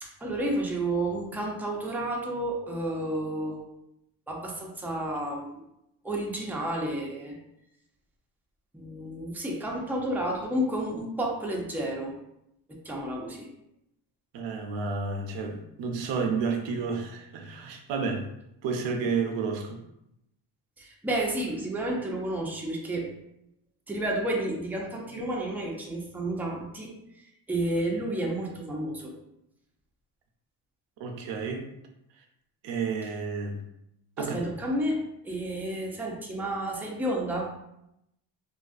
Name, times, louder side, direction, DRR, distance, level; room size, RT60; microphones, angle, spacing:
voice 1, 0.0-3.7 4.3-5.6 6.0-7.3 8.7-12.1 12.7-13.5 20.8-23.1 23.9-26.9 27.5-29.1 34.2-37.5, right 1 dB, 5° right, -2 dB, 0.5 m, -31 dB
voice 2, 14.3-18.3 18.6-19.8 31.0-31.7 32.6-33.6 34.2-34.4, right 5 dB, 85° right, 3 dB, 0.5 m, -31 dB
2.6 x 2.3 x 2.4 m, 0.81 s
cardioid pair, 85°, 43 cm